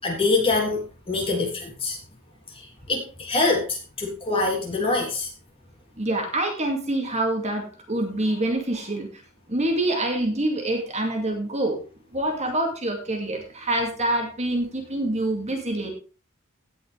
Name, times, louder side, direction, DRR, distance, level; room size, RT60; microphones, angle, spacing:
voice 1, 0.0-2.0 2.5-5.3, left 3 dB, 25° left, -1 dB, 3.3 m, -25 dB
voice 2, 6.0-9.1 9.5-11.8 12.1-15.9, right 1 dB, 30° right, 2 dB, 2.3 m, -26 dB
17.0 x 6.2 x 3.4 m, 0.34 s
head